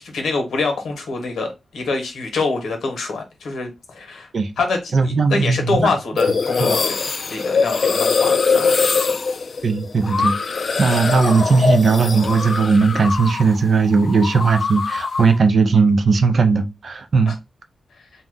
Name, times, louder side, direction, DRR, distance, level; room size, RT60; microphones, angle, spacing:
voice 1, 0.0-4.3 4.6-9.1 17.3-17.4, left 3 dB, 90° left, 0.9 m, -25 dB
voice 2, 4.9-5.9 6.6-6.7 9.6-10.4 10.8-17.3, right 4 dB, 60° right, 0.5 m, -17 dB
sound 1, 6.2-13.6 13.8-15.4, left 4 dB, 60° left, 0.3 m, -22 dB
2.7 x 2.2 x 3.5 m
cardioid pair, 60°, 0 cm